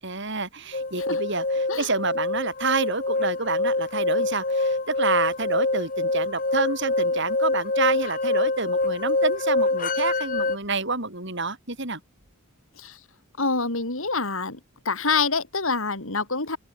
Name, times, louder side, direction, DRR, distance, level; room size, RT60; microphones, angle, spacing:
voice 1, 0.0-12.0, right 3 dB, 55° right, 6.7 m, -28 dB
sound 1, 0.7-10.6, left 2 dB, 40° left, 3.3 m, -25 dB
voice 2, 13.4-14.6 14.9-16.6, left 4 dB, 70° left, 3.9 m, -26 dB
head